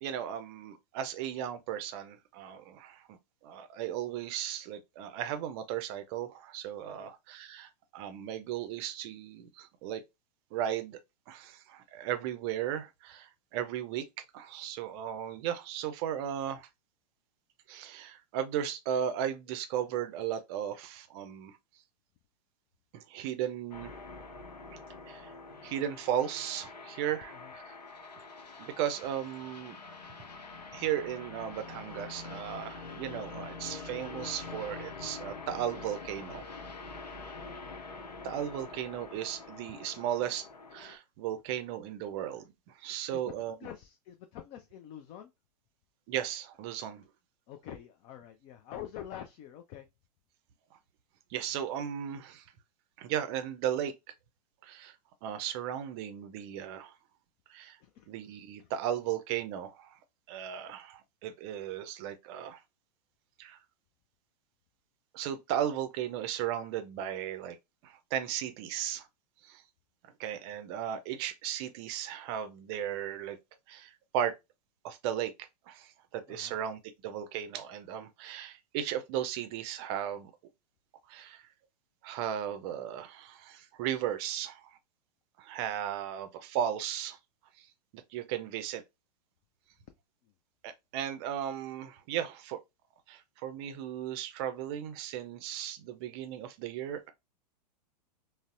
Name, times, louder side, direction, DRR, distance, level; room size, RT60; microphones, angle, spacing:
voice 1, 0.0-10.0 10.5-11.0 11.3-16.7 17.7-21.6 22.9-24.0 24.7-24.8 25.1-25.3 25.6-27.7 28.6-29.8 30.7-36.5 38.2-40.5 40.7-42.4 42.8-43.5 46.1-47.1 51.3-52.4 53.0-53.9 54.6-55.0 55.2-56.9 57.5-57.8 58.1-60.0 60.3-62.6 63.4-63.6 65.1-67.6 67.8-69.1 69.4-69.6 70.2-73.4 73.7-74.3 74.8-80.3 81.1-81.4 82.0-84.7 85.4-87.2 87.6-87.7 87.9-88.8 90.6-92.6 93.1-97.1, right 10 dB, 40° right, 0.5 m, -36 dB
sound 1, 23.7-41.0, left 4 dB, 80° left, 0.7 m, -45 dB
voice 2, 37.3-37.6 40.2-40.3 43.1-45.3 47.5-49.9 57.8-58.1 58.6-58.7 76.3-76.6 90.2-90.3, left 10 dB, 30° left, 0.3 m, -46 dB
3.9 x 2.0 x 2.4 m
figure-of-eight pair, 100°, 21 cm